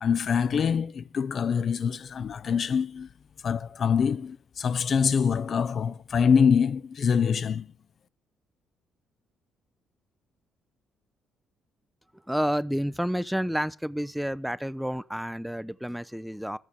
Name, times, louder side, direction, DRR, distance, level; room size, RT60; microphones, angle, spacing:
voice 1, 0.0-3.1 3.4-7.7, left 6 dB, 45° left, 0.5 m, -25 dB
voice 2, 12.3-16.6, equal, ahead, 0.6 m, -30 dB
14.5 x 7.0 x 6.7 m
figure-of-eight pair, 45°, 0 cm